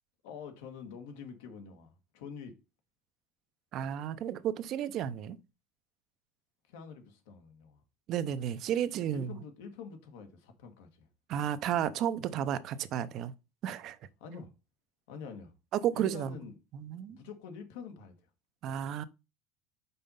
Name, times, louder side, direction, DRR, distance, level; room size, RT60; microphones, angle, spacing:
voice 1, 0.2-2.6 6.7-7.8 9.1-11.1 14.2-14.5 15.1-15.5 15.9-16.5 17.1-18.3, left 6 dB, 90° left, 1.5 m, -46 dB
voice 2, 3.7-5.4 8.1-9.3 11.3-13.3 13.6-14.0 15.8-16.3 16.7-17.2 18.6-19.0, right 10 dB, 50° right, 0.6 m, -32 dB
5.5 x 4.2 x 5.4 m
supercardioid pair, 130°, 0 cm